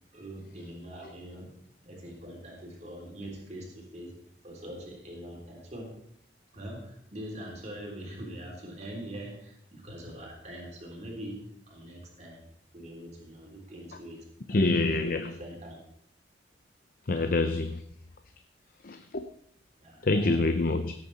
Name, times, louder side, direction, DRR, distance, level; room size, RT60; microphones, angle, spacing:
voice 1, 0.1-1.5 1.8-4.1 4.4-6.0 6.5-12.4 12.7-14.7 15.0-15.8 17.1-17.3 19.8-20.5, right 1 dB, 40° right, -1 dB, 3.6 m, -43 dB
voice 2, 14.5-15.4 17.1-17.8 18.8-19.3 20.0-20.9, left 2 dB, 50° left, 8 dB, 0.7 m, -26 dB
17.0 x 8.8 x 4.2 m, 0.69 s
head